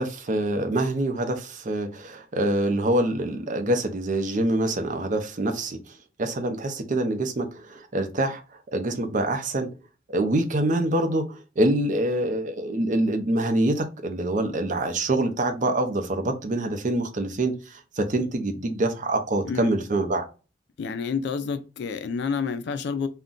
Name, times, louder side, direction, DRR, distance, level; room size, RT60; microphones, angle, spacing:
voice 1, 0.0-5.8 6.2-8.4 8.7-9.7 10.1-20.3, right 1 dB, 40° right, 0.5 m, -25 dB
voice 2, 19.4-19.7 20.8-23.1, left 5 dB, 60° left, 0.3 m, -29 dB
2.5 x 2.1 x 3.6 m
head